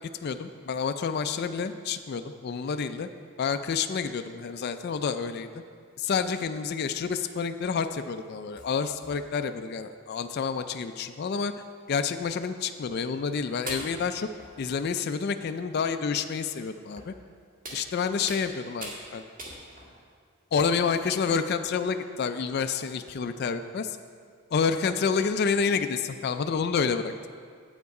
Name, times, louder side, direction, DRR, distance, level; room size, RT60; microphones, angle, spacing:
voice 1, 0.2-3.1 3.4-5.6 6.0-11.5 11.9-14.3 14.6-17.1 17.7-19.2 20.5-24.0 24.5-27.3, left 5 dB, 45° left, 8 dB, 0.3 m, -29 dB
sound 1, 7.7-8.0 8.6-9.6 10.3-10.4 10.7-10.8 11.8-11.9 12.9-13.0 13.7-15.1 15.7-15.9 17.0-17.2 17.6-18.5 18.8-19.0 19.4-20.0 20.6-21.1 21.6-21.9 22.6-22.7 23.1-23.2, right 1 dB, 35° right, 1.7 m, -43 dB
9.4 x 8.0 x 4.8 m, 2.1 s
head